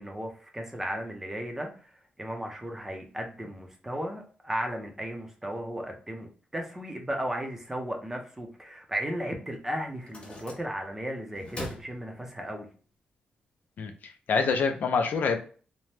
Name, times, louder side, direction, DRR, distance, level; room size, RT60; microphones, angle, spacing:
voice 1, 0.0-1.7 2.2-12.7, equal, 10° right, 2 dB, 0.6 m, -35 dB
sound 1, 9.9-11.0 11.3-12.7, left 1 dB, 35° left, 0.7 m, -43 dB
voice 2, 13.8-15.4, left 5 dB, 65° left, 5 dB, 0.4 m, -26 dB
2.8 x 2.1 x 3.2 m, 0.40 s
wide cardioid pair, 135°, 3 cm